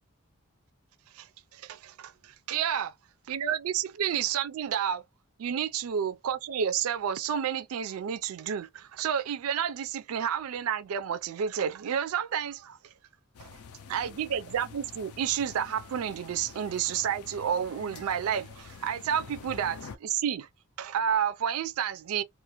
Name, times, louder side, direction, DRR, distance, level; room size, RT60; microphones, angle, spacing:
voice 1, 1.1-2.9 3.3-5.0 5.4-12.8 13.4-13.6 13.9-20.5 20.8-22.2, right 8 dB, 75° right, 0.4 m, -30 dB
sound 1, 13.3-20.0, left 6 dB, 80° left, 0.4 m, -47 dB
2.4 x 2.4 x 2.9 m
head